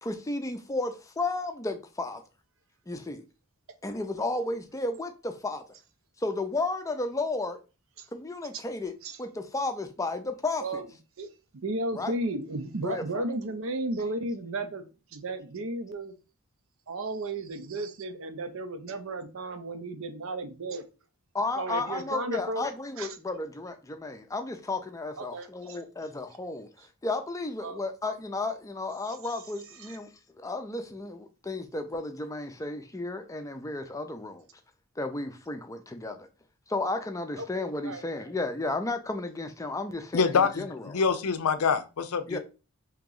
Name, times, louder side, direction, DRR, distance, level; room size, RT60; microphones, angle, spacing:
voice 1, 0.0-2.2 2.9-3.2 3.8-5.6 6.2-7.6 8.1-8.9 9.2-10.6 11.9-12.1 12.8-13.2 21.3-26.7 27.0-30.1 30.4-34.5 35.0-36.3 36.7-40.8 42.3-42.4, left 2 dB, 15° left, 0.5 m, -33 dB
voice 2, 11.5-14.8 15.1-16.1 16.9-20.8 21.6-22.7 23.0-23.2 25.2-25.8 27.6-27.8 29.8-30.0 37.4-38.0, right 2 dB, 65° right, 0.6 m, -34 dB
voice 3, 40.1-42.4, left 5 dB, 85° left, 0.5 m, -26 dB
3.0 x 2.9 x 3.7 m
head